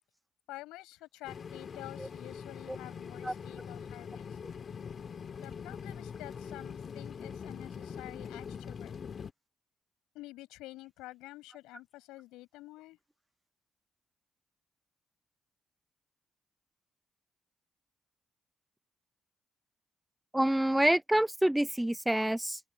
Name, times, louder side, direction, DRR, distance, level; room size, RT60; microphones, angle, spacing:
voice 1, 0.5-4.4 5.4-9.0 10.1-13.0, left 19 dB, 80° left, 7.4 m, -49 dB
sound 1, 1.2-9.3, left 6 dB, 55° left, 3.0 m, -43 dB
voice 2, 20.3-22.6, right 1 dB, 10° right, 1.0 m, -27 dB
open air
hypercardioid pair, 40°, 0 cm